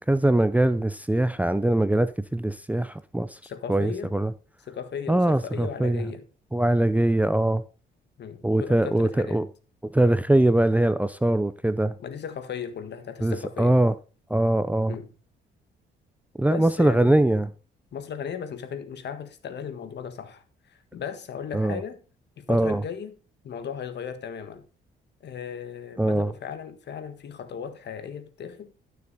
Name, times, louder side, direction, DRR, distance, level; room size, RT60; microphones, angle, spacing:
voice 1, 0.1-3.4 3.7-4.3 5.1-6.1 6.5-7.6 8.4-9.5 9.8-12.0 13.2-13.9 14.3-14.9 16.4-17.5 21.5-21.8 22.5-22.8 26.0-26.3, right 1 dB, 5° right, 0.6 m, -22 dB
voice 2, 3.4-4.1 4.7-6.2 8.2-9.4 12.0-13.7 14.9-15.1 16.5-17.4 17.9-22.0 22.4-23.1 23.4-24.6 25.2-28.7, left 7 dB, 60° left, 1.5 m, -36 dB
12.0 x 6.7 x 4.1 m
cardioid pair, 90°, 20 cm